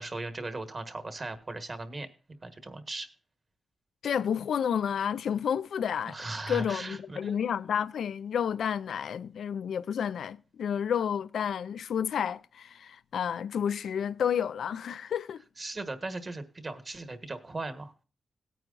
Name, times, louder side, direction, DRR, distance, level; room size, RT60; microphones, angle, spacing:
voice 1, 0.0-2.1 2.4-3.1 6.0-7.4 15.6-17.9, right 2 dB, 30° right, 1.5 m, -38 dB
voice 2, 4.0-6.2 6.5-15.4, left 8 dB, 90° left, 0.4 m, -30 dB
18.5 x 9.2 x 2.5 m
wide cardioid pair, 135°, 0 cm